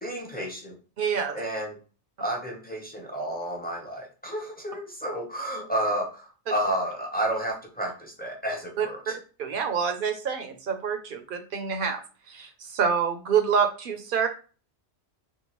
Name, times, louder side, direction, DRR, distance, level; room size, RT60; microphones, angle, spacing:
voice 1, 0.0-0.8 1.3-1.8 2.2-9.2, right 1 dB, 10° left, 0 dB, 0.5 m, -31 dB
voice 2, 1.0-1.4 8.8-9.1 9.4-12.0 12.3-14.3, right 6 dB, 60° right, 6 dB, 0.6 m, -27 dB
3.6 x 2.4 x 2.9 m, 0.36 s
omnidirectional pair, 1.2 m